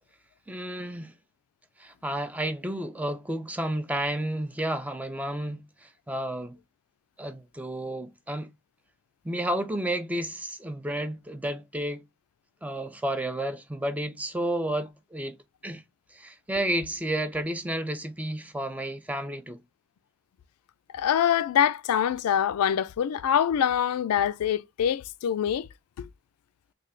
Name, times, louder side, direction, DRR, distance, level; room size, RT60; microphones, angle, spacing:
voice 1, 0.5-1.1 1.8-6.6 7.2-8.5 9.2-12.0 12.6-15.4 15.6-15.8 16.1-19.6, right 1 dB, 5° right, 0.3 m, -31 dB
voice 2, 20.9-25.7 26.0-26.1, left 9 dB, 85° left, 0.3 m, -24 dB
3.2 x 2.3 x 3.7 m
head